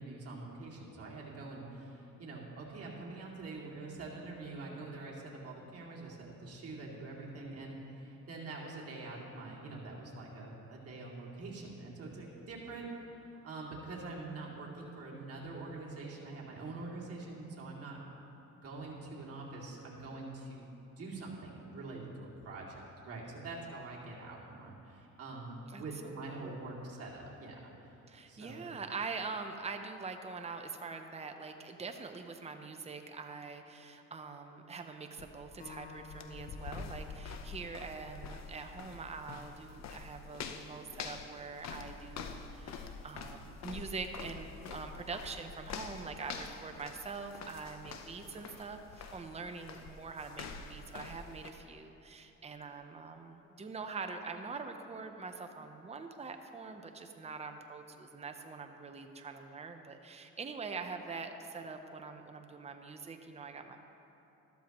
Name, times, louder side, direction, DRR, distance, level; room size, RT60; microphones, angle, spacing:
voice 1, 0.0-12.9 13.4-18.0 18.6-22.8 23.0-27.7 28.3-28.7, right 3 dB, 50° right, -4 dB, 2.5 m, -45 dB
voice 2, 25.7-26.5 28.1-63.8, right 4 dB, 20° right, 6 dB, 0.7 m, -44 dB
sound 1, 35.2-51.5, left 5 dB, 60° left, 0.8 m, -46 dB
Acoustic guitar, 35.6-38.9, left 4 dB, 25° left, 0.9 m, -53 dB
13.0 x 12.5 x 3.0 m, 2.9 s
cardioid pair, 90°, 30 cm